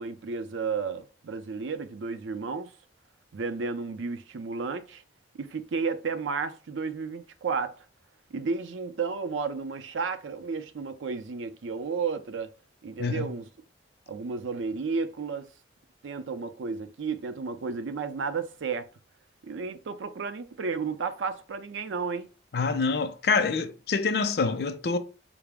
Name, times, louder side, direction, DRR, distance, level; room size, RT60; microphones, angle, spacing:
voice 1, 0.0-2.7 3.3-5.0 5.3-7.8 8.3-12.5 12.8-13.5 14.1-15.5 16.0-18.9 19.4-22.3, right 5 dB, 90° right, 0.5 m, -32 dB
voice 2, 13.0-13.3 22.5-25.0, left 4 dB, 55° left, 0.4 m, -26 dB
4.8 x 2.0 x 3.4 m
head